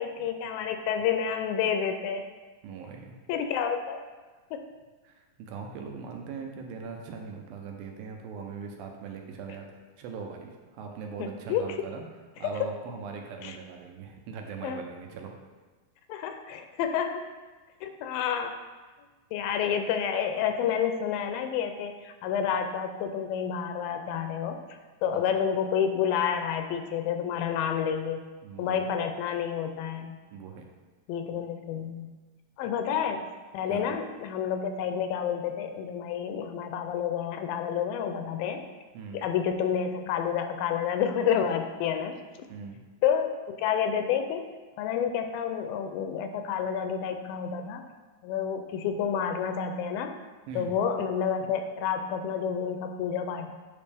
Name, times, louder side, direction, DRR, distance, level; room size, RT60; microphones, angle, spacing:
voice 1, 0.0-2.2 3.3-4.0 4.5-4.6 11.2-11.6 13.4-13.6 14.6-14.8 16.1-17.3 17.8-18.6 19.3-24.6 25.0-28.2 28.6-30.2 31.1-32.1 32.6-33.2 33.5-38.6 39.1-42.2 43.0-44.4 44.8-47.8 48.2-50.1 50.6-53.5, left 8 dB, 80° left, 6 dB, 2.2 m, -29 dB
voice 2, 2.6-3.1 5.0-9.7 10.0-12.1 12.4-15.4 28.4-28.8 30.3-30.6 33.7-33.9 38.9-39.3 42.5-42.8 50.5-50.8, right 5 dB, 80° right, 2 dB, 2.5 m, -40 dB
9.4 x 5.2 x 3.4 m, 1.3 s
omnidirectional pair, 4.3 m